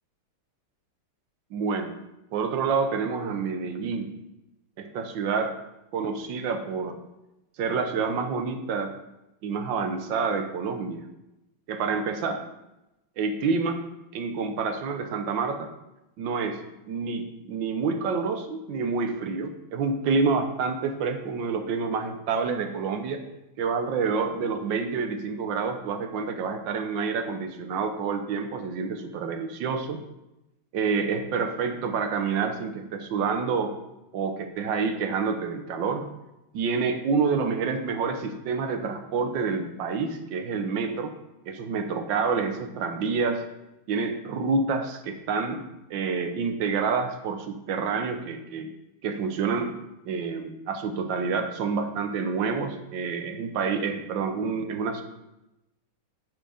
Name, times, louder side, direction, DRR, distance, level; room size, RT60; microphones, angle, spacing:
voice 1, 1.5-2.0 2.3-4.1 4.8-5.6 5.9-7.0 7.6-8.9 9.4-11.0 11.7-12.4 13.2-13.8 14.1-15.7 16.2-16.6 16.9-23.2 23.6-30.0 30.7-33.8 34.1-36.1 36.5-41.1 41.4-43.4 43.9-45.6 45.9-48.7 49.0-49.7 50.0-55.0, right 5 dB, 70° right, 7 dB, 1.4 m, -28 dB
9.0 x 4.5 x 4.9 m, 0.92 s
omnidirectional pair, 2.2 m